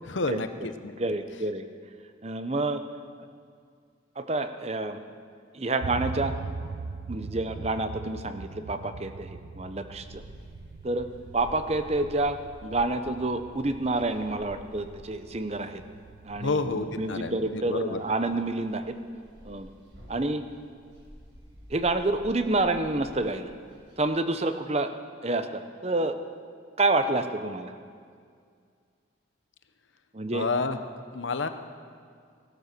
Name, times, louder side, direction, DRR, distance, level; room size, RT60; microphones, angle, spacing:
voice 1, 0.0-1.0 16.3-18.0 30.3-30.8 31.1-31.5, left 3 dB, 75° left, 9 dB, 0.9 m, -29 dB
voice 2, 1.0-1.7 2.2-2.8 4.2-5.0 5.5-6.3 7.1-10.2 10.8-11.1 11.3-15.8 16.2-18.8 19.4-19.7 20.1-20.4 21.7-23.5 24.0-24.9 25.2-26.1 26.8-27.7 30.1-30.5, right 2 dB, 30° right, 9 dB, 0.8 m, -28 dB
sound 1, 5.8-17.4, right 4 dB, 90° right, 0.5 m, -41 dB
sound 2, 9.9-24.0, equal, 70° right, 5.6 m, -52 dB
17.0 x 12.0 x 6.8 m, 2.2 s
head